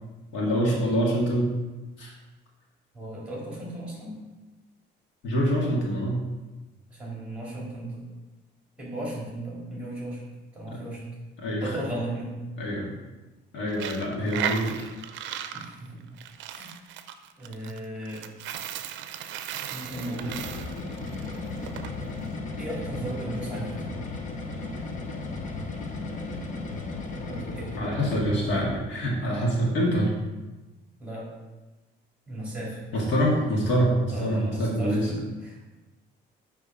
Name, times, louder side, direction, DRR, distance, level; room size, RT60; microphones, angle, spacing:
voice 1, 0.3-1.5 2.0-2.1 5.2-6.2 11.4-11.8 12.6-12.9 13.5-14.9 27.8-30.1 32.9-35.1, equal, 75° left, -3 dB, 1.8 m, -25 dB
voice 2, 2.9-4.1 6.9-8.0 8.8-10.2 10.5-11.0 11.6-12.4 15.5-16.0 16.5-16.7 17.4-18.2 19.7-20.4 22.6-24.1 27.3-27.7 31.0-31.3 32.3-32.8 34.1-35.6, right 1 dB, 5° right, -5 dB, 2.1 m, -35 dB
Coin (dropping), 13.7-21.9, right 9 dB, 80° right, 0.5 m, -36 dB
sound 1, 19.8-28.9, left 3 dB, 40° left, 0.8 m, -35 dB
6.7 x 3.5 x 5.0 m, 1.1 s
cardioid pair, 160°, 19 cm